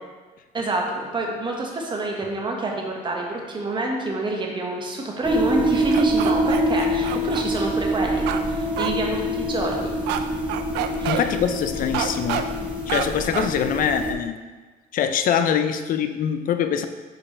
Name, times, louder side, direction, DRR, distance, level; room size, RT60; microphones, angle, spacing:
voice 1, 0.5-9.9 11.0-11.2, right 2 dB, 30° right, -1 dB, 1.2 m, -27 dB
sound 1, 5.2-14.1, equal, 5° right, 0.7 m, -25 dB
sound 2, 5.9-7.4 8.3-8.4 8.8-8.9 10.1-10.2 10.5-11.2 11.9-12.4 12.9-13.0 13.3-13.5, right 11 dB, 85° right, 0.4 m, -27 dB
voice 2, 11.1-12.5 12.9-14.4 14.9-16.8, left 8 dB, 55° left, 9 dB, 0.5 m, -23 dB
5.3 x 4.5 x 4.2 m, 1.3 s
cardioid pair, 110°, 17 cm